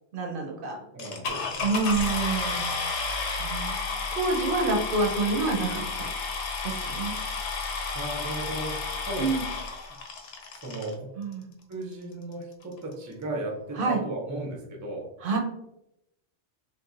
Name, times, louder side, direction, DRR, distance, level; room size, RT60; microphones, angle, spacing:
voice 1, 0.1-0.8 1.6-2.7 3.4-3.8 4.1-6.1 6.6-7.1 9.2-9.4 11.2-11.5 13.8-14.0 15.2-15.4, right 3 dB, 60° right, 1 dB, 0.7 m, -27 dB
voice 2, 0.9-1.7 6.8-6.9 7.9-9.3 9.9-10.0 10.5-11.2 11.7-15.1, right 2 dB, 30° right, -1 dB, 0.3 m, -36 dB
sound 1, 1.0-10.9 11.7-11.8 12.3-12.4 12.6-12.9, left 4 dB, 85° left, 0.9 m, -32 dB
3.0 x 2.3 x 2.4 m, 0.85 s
omnidirectional pair, 1.2 m